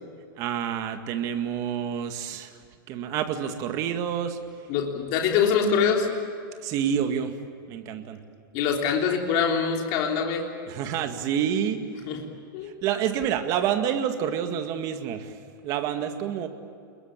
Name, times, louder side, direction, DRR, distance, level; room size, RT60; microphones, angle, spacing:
voice 1, 0.4-2.6 2.9-4.4 6.6-7.4 7.7-8.2 10.7-11.8 12.6-16.5, right 9 dB, 30° right, 7 dB, 1.9 m, -28 dB
voice 2, 4.7-6.1 8.5-10.5 12.1-12.2 12.5-12.7, left 6 dB, 35° left, 1 dB, 3.3 m, -24 dB
29.5 x 21.5 x 8.9 m, 2.4 s
supercardioid pair, 170°, 12 cm